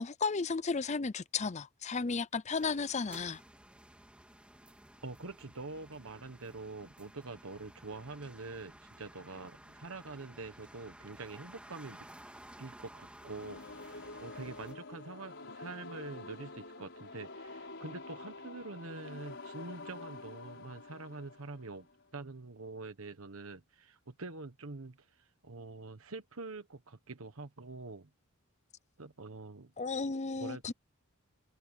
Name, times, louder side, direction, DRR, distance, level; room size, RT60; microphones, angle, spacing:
voice 1, 0.0-3.4 29.8-30.7, left 4 dB, 30° left, 0.5 m, -34 dB
sound 1, 2.6-14.7, right 1 dB, 5° right, 3.0 m, -55 dB
voice 2, 5.0-12.1 12.6-21.9 22.1-28.1 29.0-29.7 30.4-30.7, right 3 dB, 70° right, 1.2 m, -45 dB
sound 2, 13.2-22.1, left 3 dB, 55° left, 5.7 m, -48 dB
head